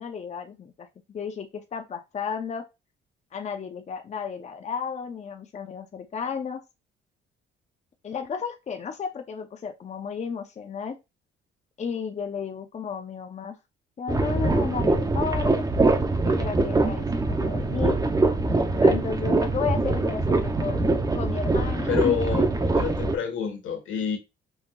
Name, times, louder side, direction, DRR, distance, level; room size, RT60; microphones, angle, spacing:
voice 1, 0.0-2.7 3.3-6.6 8.0-11.0 11.8-13.6 14.0-15.5 16.2-18.0 18.8-20.8 21.1-22.2, left 6 dB, 35° left, 0.6 m, -33 dB
sound 1, 14.1-23.2, right 2 dB, 20° right, 0.7 m, -23 dB
voice 2, 21.9-24.2, left 7 dB, 80° left, 1.3 m, -28 dB
5.4 x 2.9 x 2.3 m
cardioid pair, 90°, 20 cm